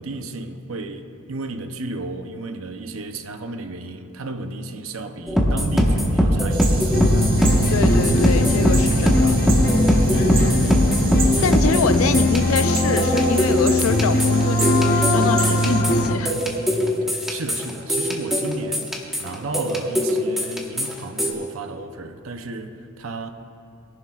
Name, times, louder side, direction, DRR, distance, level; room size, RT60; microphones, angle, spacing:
voice 1, 0.0-7.0 10.5-10.9 12.0-12.3 17.1-23.3, right 3 dB, 70° right, 0.7 m, -33 dB
sound 1, 5.3-21.3, equal, ahead, 1.3 m, -21 dB
sound 2, 6.5-15.8, right 5 dB, 45° right, 1.6 m, -33 dB
sound 3, 6.9-16.1, left 1 dB, 45° left, 0.8 m, -21 dB
voice 2, 7.7-9.4 10.1-10.7 11.4-16.4, left 5 dB, 80° left, 0.5 m, -25 dB
21.5 x 11.0 x 2.4 m
head